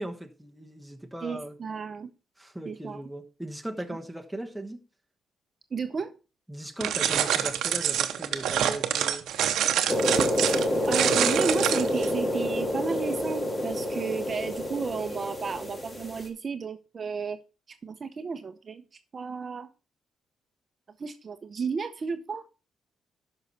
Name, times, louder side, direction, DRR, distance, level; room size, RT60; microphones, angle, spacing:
voice 1, 0.0-1.5 2.4-4.8 6.5-9.3, right 1 dB, 5° right, 1.1 m, -38 dB
voice 2, 1.2-2.1 2.7-3.0 3.9-4.0 5.7-6.1 10.4-17.4 17.7-18.8 19.1-19.7 21.0-22.4, right 5 dB, 40° right, 0.7 m, -33 dB
sound 1, 6.8-12.1, right 10 dB, 85° right, 0.8 m, -26 dB
sound 2, 9.9-16.2, left 1 dB, 25° left, 2.1 m, -28 dB
12.0 x 5.6 x 4.1 m
cardioid pair, 90°, 0 cm